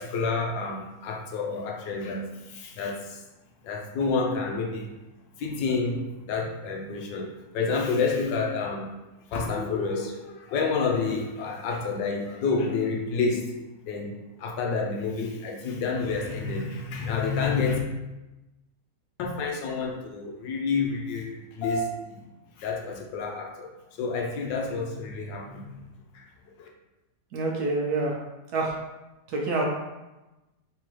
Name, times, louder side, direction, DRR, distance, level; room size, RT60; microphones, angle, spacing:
voice 1, 0.0-3.2 3.6-4.9 5.4-8.9 9.2-13.5 13.8-17.8 19.2-22.2 22.6-25.8 26.1-26.3 26.6-26.7, left 4 dB, 75° left, 0 dB, 1.3 m, -29 dB
voice 2, 27.3-28.1 28.5-28.8 29.3-29.6, right 3 dB, 70° right, -2 dB, 1.0 m, -26 dB
3.7 x 3.2 x 3.0 m, 1.0 s
omnidirectional pair, 2.0 m